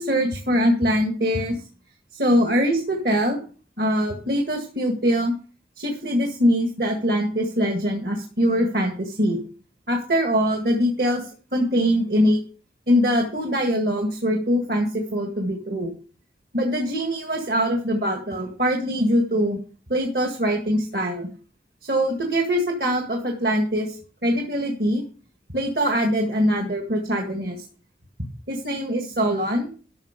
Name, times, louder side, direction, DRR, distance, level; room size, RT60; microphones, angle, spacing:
voice 1, 0.0-1.6 2.1-3.4 3.8-5.3 5.8-9.4 9.9-12.4 12.9-15.9 16.5-19.6 19.9-21.3 21.8-25.0 25.5-27.6 28.5-29.7, equal, 60° right, 2 dB, 1.9 m, -23 dB
13.0 x 6.5 x 5.2 m, 0.39 s
head